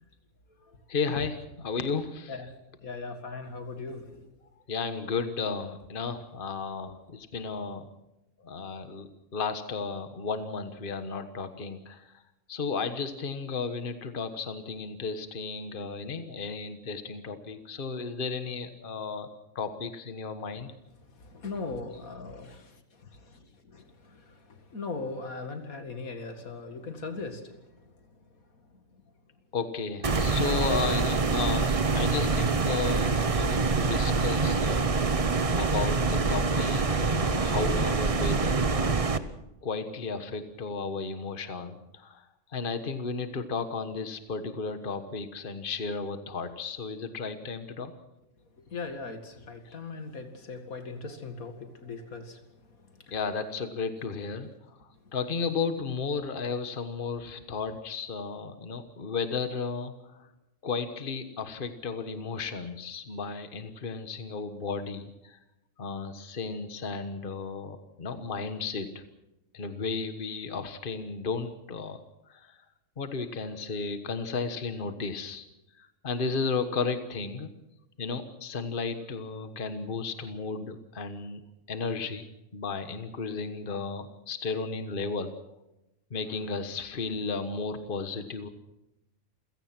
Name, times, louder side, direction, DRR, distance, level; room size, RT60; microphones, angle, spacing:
voice 1, 0.9-1.4 1.6-2.3 4.7-7.9 8.4-12.1 12.5-19.3 19.5-20.7 29.5-34.9 35.5-39.0 39.6-42.2 42.5-47.9 49.6-49.8 53.1-54.5 54.8-60.3 60.6-65.4 65.8-69.0 69.5-72.0 72.3-72.6 73.0-75.4 75.8-77.5 78.0-82.2 82.5-85.3 86.1-88.5, left 4 dB, 40° left, 9 dB, 1.5 m, -34 dB
voice 2, 2.8-4.3 21.1-27.9 28.7-28.8 48.7-52.4 52.9-53.2, left 3 dB, 85° left, 7 dB, 2.6 m, -40 dB
sound 1, 30.0-39.2, right 4 dB, 30° right, 0.8 m, -25 dB
28.0 x 17.0 x 6.1 m, 0.91 s
omnidirectional pair, 1.4 m